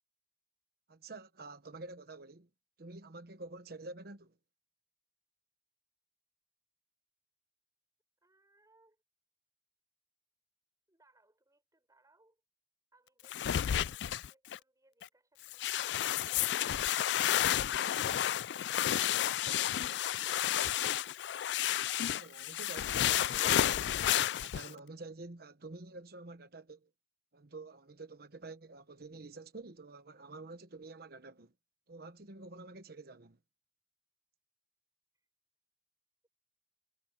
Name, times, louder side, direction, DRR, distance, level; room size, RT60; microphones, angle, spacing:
voice 1, 0.9-2.5 2.8-4.4 22.1-23.9 24.4-26.9 27.3-31.5 31.9-33.4, right 3 dB, 60° right, 1.1 m, -49 dB
voice 2, 8.2-9.0 10.9-12.4 12.9-19.1 35.1-35.3, right 2 dB, 20° right, 6.9 m, -70 dB
sound 1, 13.3-14.6 15.0-15.1 15.5-24.7, left 11 dB, 70° left, 0.3 m, -31 dB
head